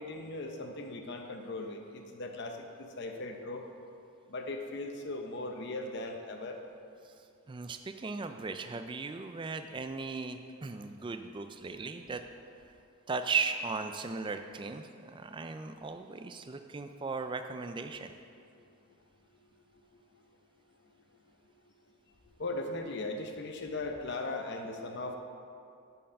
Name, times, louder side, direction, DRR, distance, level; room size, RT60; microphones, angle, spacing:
voice 1, 0.0-2.5 2.8-3.6 4.3-6.6 22.4-25.2, left 2 dB, 50° left, 4 dB, 0.7 m, -38 dB
voice 2, 7.0-12.2 13.1-18.1, right 4 dB, 20° right, 8 dB, 0.3 m, -37 dB
8.8 x 4.7 x 6.4 m, 2.5 s
head